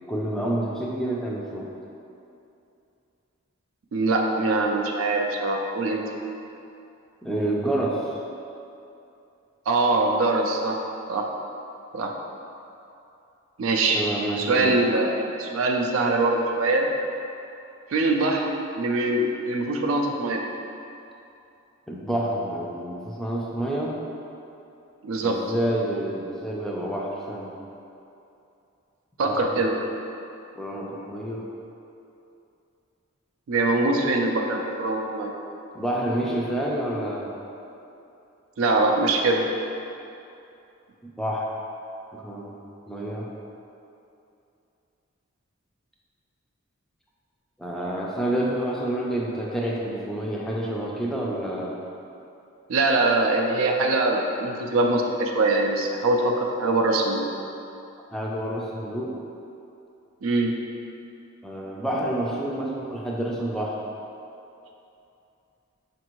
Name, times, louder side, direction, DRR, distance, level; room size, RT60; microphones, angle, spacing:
voice 1, 0.1-1.7 7.2-8.1 13.9-14.8 21.9-23.9 25.2-27.5 29.2-29.7 30.6-31.4 35.7-37.3 41.2-41.5 42.1-42.5 42.9-43.3 47.6-51.8 58.1-59.1 61.4-63.9, right 1 dB, ahead, -4 dB, 0.3 m, -28 dB
voice 2, 3.9-6.1 9.7-10.8 11.1-11.3 11.9-12.1 13.6-14.0 14.4-16.9 17.9-18.5 18.8-20.4 25.0-25.4 29.2-29.7 33.5-35.3 38.6-39.5 52.7-57.3 60.2-60.5, right 2 dB, 75° right, 1 dB, 0.4 m, -23 dB
5.3 x 2.5 x 2.9 m, 2.7 s
head